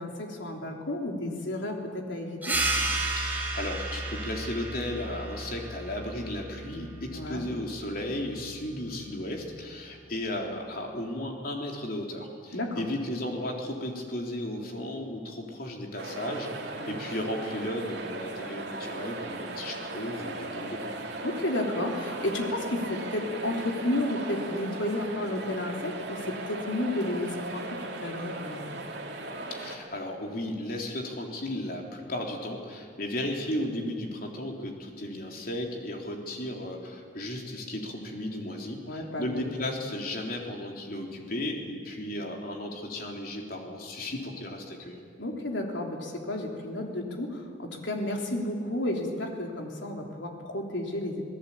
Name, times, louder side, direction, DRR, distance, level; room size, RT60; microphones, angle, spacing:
voice 1, 0.0-2.6 7.1-7.4 12.5-12.8 16.8-17.0 21.2-28.8 38.9-39.4 45.2-51.2, left 1 dB, 75° left, 1 dB, 3.5 m, -32 dB
sound 1, 2.4-7.6, right 2 dB, 10° right, 3.8 m, -32 dB
voice 2, 3.2-21.0 29.5-45.0, left 1 dB, 50° left, 1 dB, 3.7 m, -35 dB
sound 2, 16.0-29.8, right 2 dB, 60° right, 3.3 m, -38 dB
27.5 x 18.0 x 8.6 m, 2.1 s
head